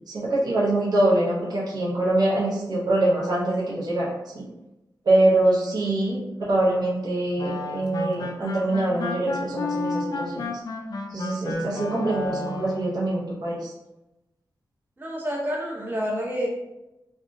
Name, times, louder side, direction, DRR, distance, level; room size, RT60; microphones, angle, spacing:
voice 1, 0.1-4.5 5.0-6.2 6.5-10.5 11.1-13.7, right 1 dB, 60° right, -6 dB, 0.8 m, -24 dB
sound 1, 7.4-12.9, left 3 dB, 55° left, 0.4 m, -32 dB
voice 2, 15.0-16.5, equal, 25° right, -3 dB, 0.7 m, -29 dB
3.4 x 2.4 x 2.5 m, 0.95 s
wide cardioid pair, 160°, 8 cm